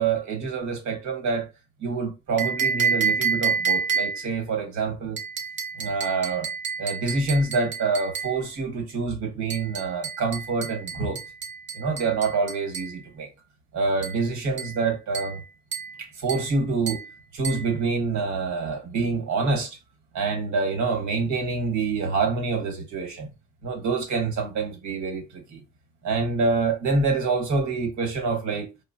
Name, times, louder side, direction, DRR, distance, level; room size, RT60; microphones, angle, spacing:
voice 1, 0.0-1.5 1.8-5.2 5.8-6.5 6.8-11.2 11.7-13.3 13.7-15.4 16.0-17.0 17.3-19.8 20.1-23.3 23.6-25.6 26.0-28.7, right 4 dB, 70° right, 1.3 m, -26 dB
sound 1, 2.4-4.3 5.2-8.4 9.5-13.0 14.0-14.2 14.6-14.8 15.1-15.4 15.7-16.0 16.3-16.5 16.9-17.1 17.4-17.7, right 6 dB, 40° right, 0.8 m, -29 dB
4.8 x 2.0 x 2.5 m
cardioid pair, 90°, 30 cm